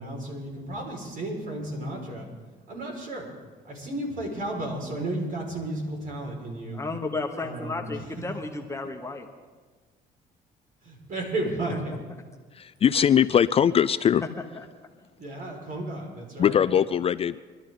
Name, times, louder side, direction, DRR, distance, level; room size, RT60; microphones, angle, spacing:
voice 1, 0.0-2.3 2.7-3.3 3.7-6.8 7.4-7.8 10.8-11.9 15.2-16.6, right 1 dB, 55° right, 0 dB, 5.2 m, -33 dB
voice 2, 6.7-9.3 11.7-11.8 14.5-14.6, left 3 dB, 15° left, 3 dB, 1.2 m, -33 dB
voice 3, 12.6-14.2 16.4-17.4, left 9 dB, 35° left, 15 dB, 0.3 m, -21 dB
23.5 x 12.5 x 3.9 m, 1.4 s
cardioid pair, 110°, 17 cm